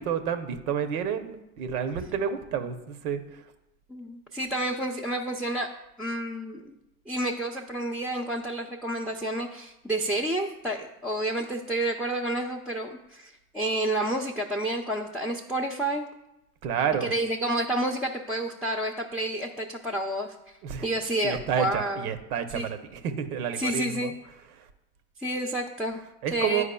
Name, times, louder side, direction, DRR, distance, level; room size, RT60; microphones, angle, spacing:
voice 1, 0.0-3.2 16.6-17.1 20.6-20.9 21.2-24.1 26.2-26.6, right 8 dB, 80° right, 9 dB, 0.8 m, -29 dB
voice 2, 3.9-5.7 6.0-6.7 7.1-16.0 17.0-20.6 20.8-22.1 22.5-22.7 23.6-24.1 25.2-26.6, right 1 dB, ahead, 0 dB, 0.5 m, -30 dB
9.8 x 4.7 x 2.2 m, 0.91 s
hypercardioid pair, 65°, 44 cm